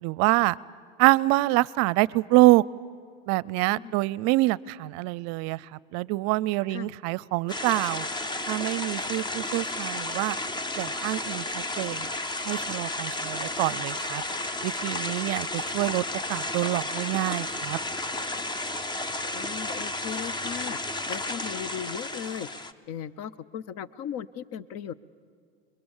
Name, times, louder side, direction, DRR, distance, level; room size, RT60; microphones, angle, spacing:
voice 1, 0.0-0.6 1.0-2.6 3.3-5.6 5.9-8.1 8.5-10.4 10.8-12.1 12.5-14.2 14.6-17.8, right 20 dB, 60° right, 23 dB, 0.5 m, -25 dB
sound 1, 7.5-22.7, left 2 dB, 15° left, 0.8 m, -32 dB
voice 2, 19.3-20.8 21.1-22.5 22.9-24.9, left 9 dB, 55° left, 18 dB, 0.8 m, -37 dB
29.0 x 22.0 x 7.3 m, 2.1 s
supercardioid pair, 125°, 30 cm